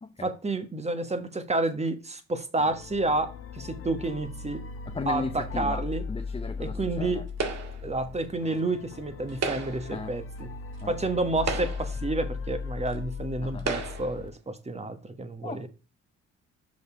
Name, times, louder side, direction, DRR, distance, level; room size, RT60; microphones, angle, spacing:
voice 1, 0.2-4.6 5.1-6.0 6.6-7.2 7.8-10.5 10.9-15.7, right 2 dB, 20° right, 1.4 m, -30 dB
sound 1, 2.6-14.3, left 5 dB, 45° left, 1.0 m, -38 dB
voice 2, 4.9-7.2 9.9-10.1 10.8-10.9 13.4-13.7 15.4-15.7, left 3 dB, 20° left, 0.8 m, -36 dB
sound 2, 7.4-7.9 9.3-9.9 10.8-10.9 11.4-12.0 12.9-13.0 13.6-14.2, right 4 dB, 60° right, 2.0 m, -33 dB
6.5 x 5.3 x 5.0 m
cardioid pair, 90°, 30 cm